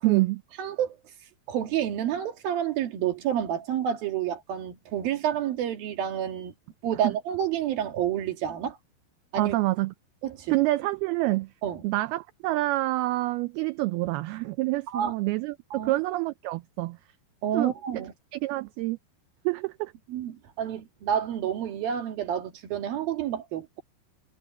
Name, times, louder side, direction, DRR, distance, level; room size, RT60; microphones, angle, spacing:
voice 1, 0.0-0.4 7.0-7.1 9.4-9.9 10.5-11.5 11.8-15.6 15.8-17.0 17.5-17.7 18.3-19.0 19.5-19.9, right 19 dB, 90° right, 2.2 m, -27 dB
voice 2, 0.6-1.0 1.5-6.5 6.8-8.8 9.3-9.6 10.2-10.6 11.6-11.8 14.9-15.1 15.7-15.9 17.4-18.1 20.1-23.8, right 10 dB, 60° right, 3.6 m, -29 dB
omnidirectional pair, 5.1 m